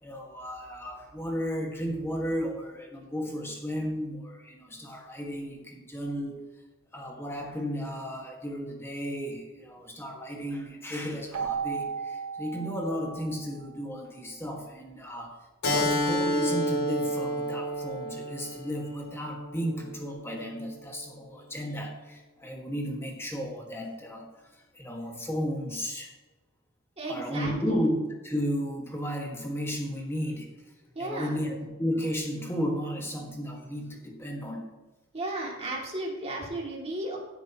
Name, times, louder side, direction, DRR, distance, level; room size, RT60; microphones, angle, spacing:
voice 1, 0.0-6.5 6.9-15.4 15.7-26.1 27.1-30.5 31.0-34.6, equal, 10° left, 0 dB, 1.7 m, -34 dB
Keyboard (musical), 11.3-13.9, right 6 dB, 70° right, 1.6 m, -35 dB
Keyboard (musical) 2, 15.6-20.8, equal, 75° left, 3.0 m, -30 dB
voice 2, 27.0-27.7 30.9-31.5 35.1-37.2, right 1 dB, 25° right, -3 dB, 2.6 m, -34 dB
16.0 x 8.1 x 3.0 m, 1.1 s
head